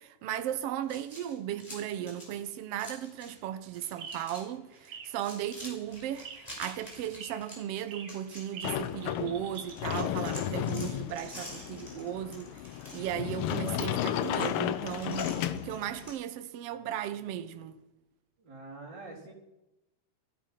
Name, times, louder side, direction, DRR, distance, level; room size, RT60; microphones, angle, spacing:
voice 1, 0.0-17.8, right 11 dB, 65° right, 1.7 m, -36 dB
sound 1, 0.8-3.4 3.7-4.4 4.7-9.2 9.5-16.2, equal, 10° left, 5.3 m, -48 dB
sound 2, 3.2-9.7, right 6 dB, 85° right, 3.5 m, -47 dB
Sliding door, 8.6-16.1, left 11 dB, 85° left, 1.2 m, -33 dB
voice 2, 18.4-19.3, right 2 dB, 35° right, 4.3 m, -45 dB
15.5 x 15.0 x 5.9 m
omnidirectional pair, 3.4 m